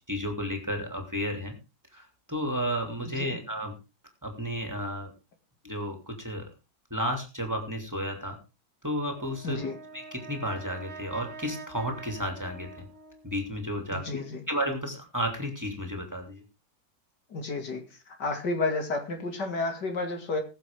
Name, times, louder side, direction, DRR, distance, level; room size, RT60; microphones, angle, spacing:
voice 1, 0.1-1.5 1.9-3.7 4.2-5.1 5.6-6.5 6.9-8.4 8.8-9.6 9.9-12.9 13.2-14.0 14.5-16.4, equal, 10° right, 4 dB, 2.7 m, -32 dB
voice 2, 3.1-3.4 9.4-9.8 13.9-14.4 17.3-17.8 18.2-20.4, left 3 dB, 75° left, 5 dB, 2.9 m, -31 dB
Brass instrument, 9.1-13.5, right 4 dB, 40° right, 1.5 m, -46 dB
20.5 x 7.4 x 3.6 m, 0.29 s
omnidirectional pair, 1.8 m